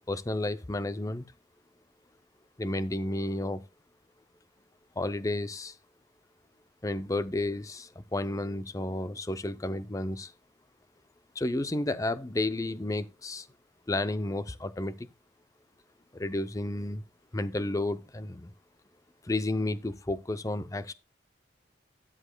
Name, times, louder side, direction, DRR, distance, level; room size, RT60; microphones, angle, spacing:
voice 1, 0.1-1.2 2.6-3.6 5.0-5.8 6.8-10.3 11.4-13.5 13.9-15.1 16.1-17.0 17.3-18.5 19.2-20.9, left 2 dB, 15° left, 0.5 m, -32 dB
13.0 x 9.9 x 2.2 m
head